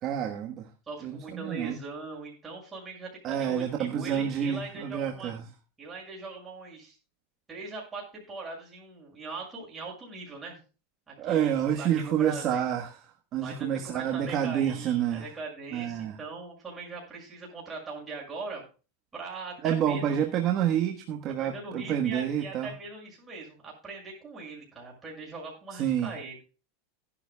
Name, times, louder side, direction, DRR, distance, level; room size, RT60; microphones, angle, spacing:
voice 1, 0.0-0.7 1.0-1.8 3.2-5.5 11.2-13.0 13.3-15.3 15.7-16.2 19.6-22.7 25.8-26.2, right 9 dB, 35° right, 3 dB, 1.3 m, -28 dB
voice 2, 0.9-5.3 5.8-7.0 7.5-10.6 11.1-12.7 13.4-18.6 19.1-20.2 21.4-26.3, right 3 dB, 15° right, -3 dB, 6.3 m, -41 dB
17.0 x 11.5 x 2.2 m, 0.33 s
supercardioid pair, 160°, 0 cm